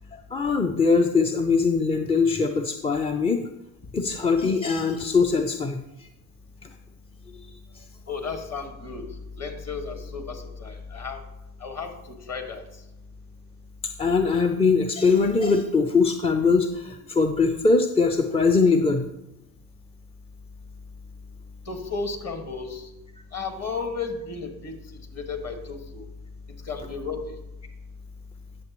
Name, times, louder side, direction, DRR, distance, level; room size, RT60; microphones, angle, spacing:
voice 1, 0.1-3.4 3.9-5.8 14.0-19.1, left 4 dB, 15° left, 6 dB, 0.4 m, -22 dB
voice 2, 8.1-9.1 9.4-11.2 11.6-12.6 21.7-22.9 23.3-24.7 25.1-26.1 26.6-27.3, left 4 dB, 35° left, 5 dB, 1.7 m, -33 dB
9.2 x 6.8 x 3.0 m, 0.90 s
hypercardioid pair, 70°, 43 cm